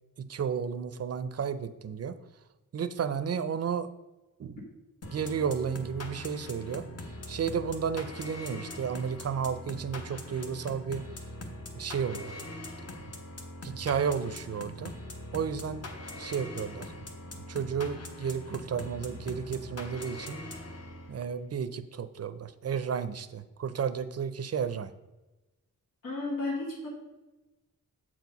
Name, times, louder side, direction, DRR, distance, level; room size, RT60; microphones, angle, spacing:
voice 1, 0.2-2.2 2.7-3.9 4.4-4.6 5.1-6.8 7.3-11.1 11.8-12.3 13.6-14.9 15.3-15.9 16.2-16.9 17.3-20.4 21.1-24.9, right 7 dB, 50° right, 13 dB, 0.5 m, -32 dB
sound 1, 5.0-21.3, left 1 dB, 50° left, 1.1 m, -42 dB
voice 2, 26.0-26.9, left 2 dB, 90° left, -6 dB, 2.2 m, -33 dB
7.3 x 4.7 x 5.3 m, 1.1 s
wide cardioid pair, 105°, 32 cm